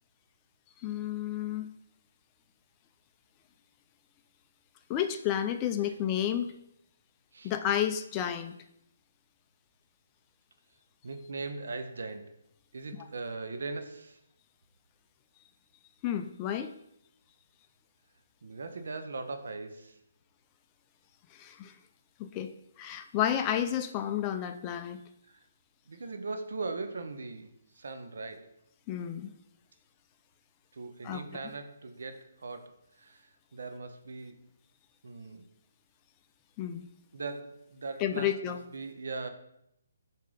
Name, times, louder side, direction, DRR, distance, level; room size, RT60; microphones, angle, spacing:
voice 1, 0.8-1.7 4.9-6.5 7.4-8.6 16.0-16.7 21.3-21.8 22.2-22.5 22.8-25.0 28.9-29.3 31.0-31.4 36.6-36.8 38.0-38.6, left 10 dB, 25° left, 8 dB, 0.4 m, -31 dB
voice 2, 11.0-12.3 12.7-14.2 18.4-19.9 25.3-25.4 25.9-28.5 30.7-34.3 35.0-35.5 37.1-39.3, right 3 dB, 70° right, 8 dB, 0.8 m, -40 dB
7.2 x 2.8 x 5.0 m, 0.78 s
hypercardioid pair, 150°, 0 cm